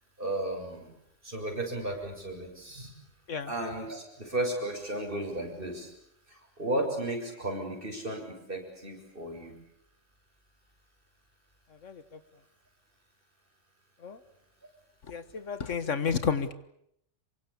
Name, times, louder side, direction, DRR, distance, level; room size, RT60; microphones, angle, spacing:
voice 1, 0.2-0.9 1.2-2.9 3.5-5.9 6.3-9.5, right 1 dB, 45° right, 2 dB, 7.3 m, -34 dB
voice 2, 11.8-12.2 14.0-14.2 15.1-16.5, left 6 dB, 80° left, 13 dB, 1.9 m, -31 dB
27.0 x 24.0 x 8.5 m, 0.73 s
omnidirectional pair, 1.3 m